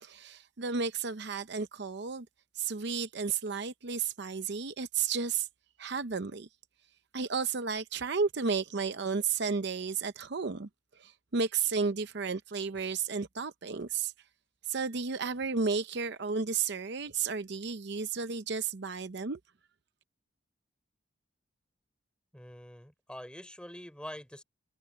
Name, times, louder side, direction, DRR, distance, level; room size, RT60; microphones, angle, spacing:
voice 1, 0.0-2.3 2.6-5.5 5.8-6.5 7.1-10.7 11.0-14.1 14.7-19.4, right 5 dB, 55° right, 0.7 m, -32 dB
voice 2, 22.3-24.4, equal, 5° left, 3.6 m, -45 dB
head